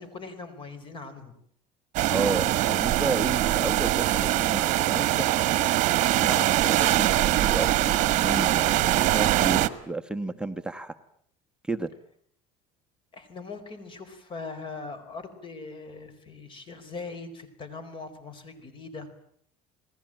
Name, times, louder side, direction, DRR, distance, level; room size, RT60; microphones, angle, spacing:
voice 1, 0.0-1.3 13.1-19.1, left 4 dB, 35° left, 12 dB, 4.5 m, -41 dB
sound 1, 1.9-9.7, right 15 dB, 55° right, 1.5 m, -23 dB
voice 2, 2.1-5.4 6.2-11.0 11.6-11.9, right 3 dB, 5° right, 7 dB, 1.1 m, -32 dB
29.0 x 19.5 x 9.0 m, 0.66 s
cardioid pair, 130°, 15 cm